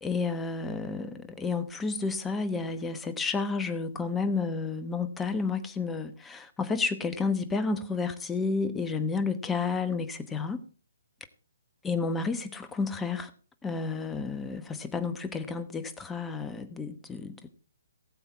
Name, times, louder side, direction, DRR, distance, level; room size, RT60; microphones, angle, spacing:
voice 1, 0.0-10.6 11.8-13.3 13.6-17.5, left 4 dB, 10° left, 1.2 m, -31 dB
19.0 x 7.9 x 4.5 m
figure-of-eight pair, 135°, 0 cm